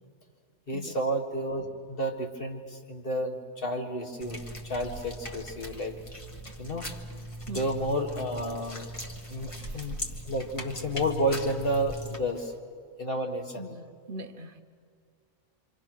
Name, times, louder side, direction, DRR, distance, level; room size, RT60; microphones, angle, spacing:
voice 1, 0.7-6.0 6.6-6.9 7.5-8.8 9.3-10.0 10.2-12.5 13.0-13.7, right 1 dB, 40° left, 1.9 m, -31 dB
sound 1, 4.2-12.2, equal, 25° left, 1.6 m, -40 dB
voice 2, 7.5-7.8 9.6-10.0 13.6-14.6, right 1 dB, 45° right, 1.0 m, -42 dB
26.5 x 26.0 x 6.2 m
omnidirectional pair, 1.4 m